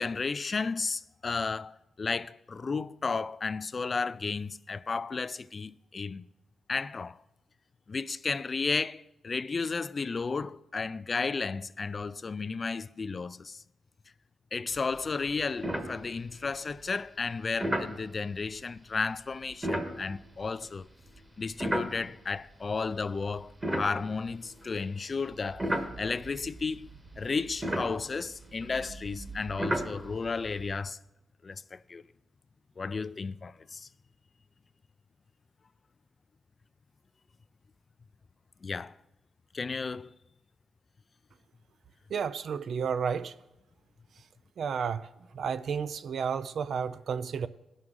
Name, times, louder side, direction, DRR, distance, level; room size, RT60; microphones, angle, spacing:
voice 1, 0.0-6.3 6.7-7.2 7.9-13.6 14.5-20.9 21.4-26.9 27.2-31.0 31.4-32.0 32.8-33.9 38.6-38.9 39.5-40.1, left 4 dB, 40° left, 0.3 m, -33 dB
sound 1, 14.8-15.0 15.3-15.4 15.6-16.5 17.6-18.0 19.5-22.4 23.0-24.8 25.3-30.8, right 1 dB, 20° right, 1.3 m, -35 dB
voice 2, 42.1-43.3 44.6-47.5, right 6 dB, 70° right, 0.5 m, -32 dB
18.0 x 6.2 x 3.7 m
cardioid pair, 75°, 0 cm